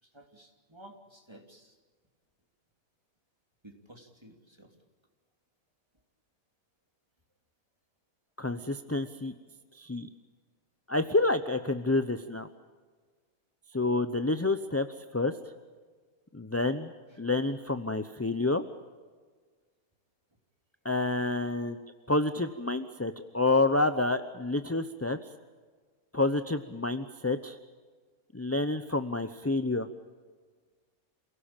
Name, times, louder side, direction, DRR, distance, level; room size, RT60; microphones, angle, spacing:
voice 1, 0.0-1.7 3.6-4.8 17.1-17.2, right 1 dB, 20° right, 3 dB, 3.0 m, -54 dB
voice 2, 8.4-9.3 9.7-10.1 10.9-12.5 13.7-14.9 15.1-15.3 16.3-16.9 17.2-18.6 20.8-21.8 22.1-25.2 26.1-27.6 28.3-29.9, left 2 dB, 15° left, 9 dB, 0.5 m, -28 dB
28.0 x 17.5 x 8.9 m, 1.5 s
omnidirectional pair, 1.5 m